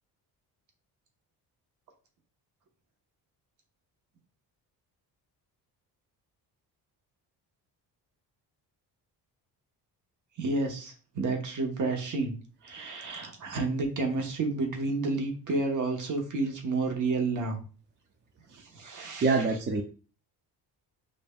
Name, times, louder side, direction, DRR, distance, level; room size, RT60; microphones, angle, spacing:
voice 1, 10.4-12.3 12.6-17.6 18.5-19.5, right 3 dB, 50° right, 2 dB, 1.1 m, -30 dB
voice 2, 19.2-19.8, right 4 dB, 30° right, 3 dB, 0.4 m, -25 dB
5.3 x 2.6 x 2.3 m, 0.37 s
cardioid pair, 120°, 39 cm